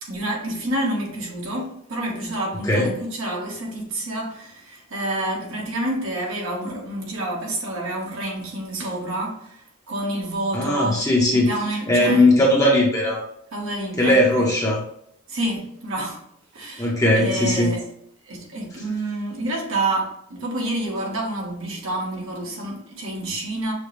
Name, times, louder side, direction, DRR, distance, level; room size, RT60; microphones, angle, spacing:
voice 1, 0.0-11.0 11.3-12.3 13.5-14.5 15.3-16.2 16.5-17.8 18.2-23.7, right 1 dB, 65° right, 1.4 m, -28 dB
voice 2, 10.5-11.5 11.9-13.2 14.0-14.8 16.8-17.7, left 1 dB, 15° left, 0.9 m, -18 dB
6.5 x 2.3 x 3.3 m
head